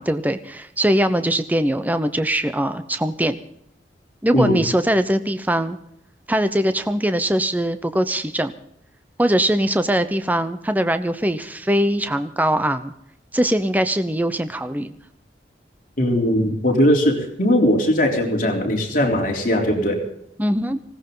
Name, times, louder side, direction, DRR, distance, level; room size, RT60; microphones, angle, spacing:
voice 1, 0.0-3.4 4.2-5.8 6.3-8.5 9.2-12.9 13.3-15.0 20.4-20.8, right 1 dB, 10° right, 10 dB, 0.8 m, -21 dB
voice 2, 4.3-4.6 16.0-20.0, equal, 50° left, 0 dB, 3.6 m, -19 dB
20.0 x 17.5 x 3.9 m, 0.71 s
head